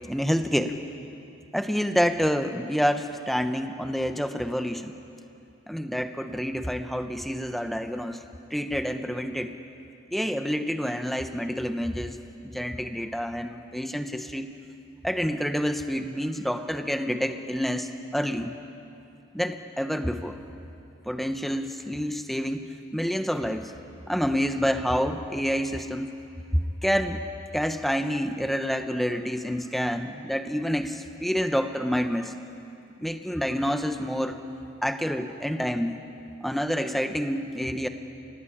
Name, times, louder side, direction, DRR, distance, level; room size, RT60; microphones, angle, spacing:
voice 1, 0.1-0.8 1.5-4.9 5.7-8.2 8.5-9.5 10.1-12.2 12.5-14.5 15.0-18.5 19.3-20.4 21.0-23.7 24.1-26.2 26.5-27.2 27.5-32.3 33.0-34.4 34.8-36.0 36.4-37.9, equal, ahead, 7 dB, 1.0 m, -28 dB
30.0 x 17.0 x 8.7 m, 2.7 s
head